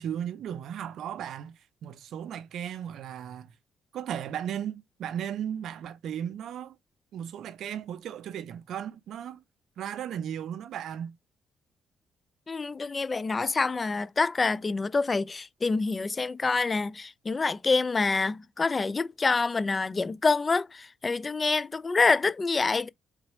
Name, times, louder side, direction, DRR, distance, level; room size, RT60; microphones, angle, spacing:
voice 1, 0.0-3.5 3.9-6.8 7.1-9.4 9.8-11.2, right 9 dB, 75° right, 0.5 m, -36 dB
voice 2, 12.5-22.9, left 4 dB, 30° left, 0.4 m, -26 dB
3.9 x 2.9 x 3.1 m
cardioid pair, 90°, 0 cm